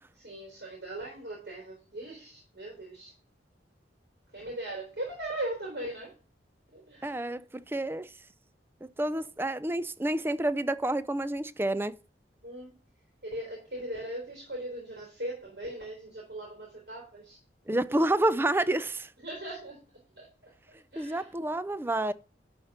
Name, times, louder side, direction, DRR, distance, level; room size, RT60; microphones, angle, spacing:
voice 1, 0.2-3.1 4.3-6.1 6.7-7.3 12.4-12.8 13.2-17.4 19.2-19.8 20.2-21.3, right 1 dB, 65° right, 3.6 m, -39 dB
voice 2, 7.0-8.1 8.8-12.0 17.7-19.1 21.0-22.1, right 1 dB, 15° right, 0.4 m, -29 dB
11.5 x 4.3 x 5.7 m
head